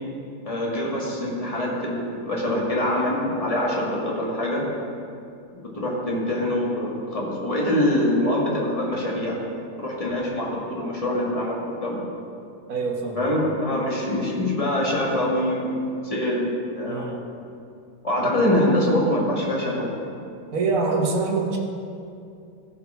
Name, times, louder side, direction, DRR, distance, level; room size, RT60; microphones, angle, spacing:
voice 1, 0.4-4.6 5.5-9.4 9.8-12.1 13.1-17.1 18.0-19.9, left 1 dB, 20° left, -4 dB, 2.2 m, -24 dB
voice 2, 12.7-13.2 16.9-17.2 20.5-21.6, right 4 dB, 55° right, -1 dB, 1.7 m, -24 dB
15.0 x 6.0 x 5.8 m, 2.5 s
omnidirectional pair, 1.7 m